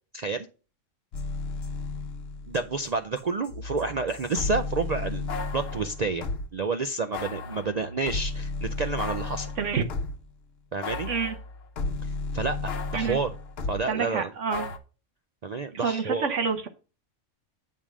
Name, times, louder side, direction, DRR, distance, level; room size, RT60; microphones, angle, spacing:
voice 1, 0.1-0.5 2.5-6.2 6.5-9.5 10.7-11.1 12.0-13.3 13.7-14.3 15.4-16.4, right 4 dB, 80° right, 8 dB, 0.3 m, -29 dB
sound 1, 1.1-6.5 7.1-10.3 10.8-13.9 14.5-14.8, left 3 dB, 55° left, 0.9 m, -33 dB
voice 2, 13.9-14.7 15.7-16.7, right 6 dB, 65° right, 7 dB, 1.2 m, -28 dB
8.4 x 3.6 x 6.0 m, 0.34 s
omnidirectional pair, 1.4 m